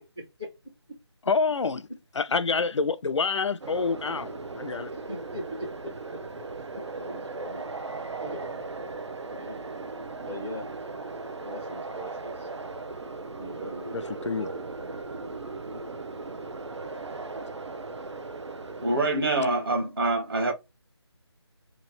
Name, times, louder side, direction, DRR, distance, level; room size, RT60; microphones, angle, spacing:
voice 1, 1.3-1.9 2.2-4.9 13.9-14.5, left 4 dB, 80° left, 0.5 m, -27 dB
sound 1, 3.6-19.1, right 3 dB, 75° right, 0.7 m, -37 dB
voice 2, 4.8-6.2 6.7-8.6 9.3-9.6 10.2-10.7 11.4-12.5 13.3-14.7 15.7-15.8, equal, 10° right, 0.5 m, -40 dB
voice 3, 18.8-20.5, right 2 dB, 55° right, 1.0 m, -25 dB
3.0 x 2.7 x 4.2 m
figure-of-eight pair, 175°, 15 cm